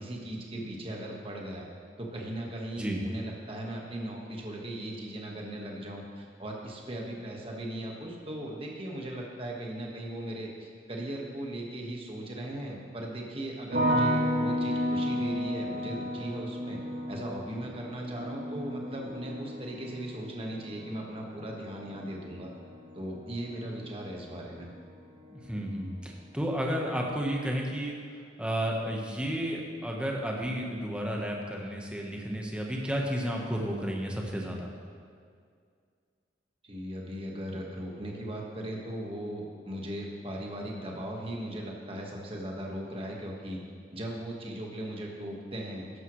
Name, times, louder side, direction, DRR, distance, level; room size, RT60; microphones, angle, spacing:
voice 1, 0.0-1.7 2.0-16.8 17.1-22.5 22.9-24.7 36.6-43.6 43.9-45.9, right 1 dB, 30° right, -1 dB, 1.4 m, -38 dB
sound 1, 13.7-24.8 25.1-25.8, equal, 65° right, 2.2 m, -33 dB
voice 2, 25.3-28.0 28.4-34.7, equal, 5° right, -1 dB, 1.1 m, -32 dB
12.5 x 11.0 x 3.2 m, 2.2 s
head